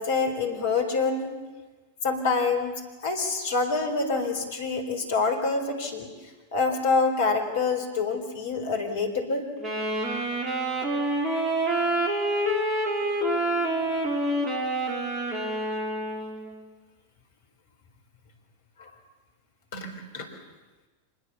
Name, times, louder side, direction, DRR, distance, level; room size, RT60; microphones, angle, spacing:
voice 1, 0.0-1.4 2.0-2.7 3.0-6.1 6.5-9.5 13.5-14.1 18.8-18.9 19.7-20.3, left 4 dB, 60° left, 5 dB, 4.5 m, -27 dB
Wind instrument woodwind instrument, 9.6-16.5, right 1 dB, 20° right, 4.9 m, -27 dB
25.0 x 21.0 x 7.2 m, 1.2 s
figure-of-eight pair, 90°, 0 cm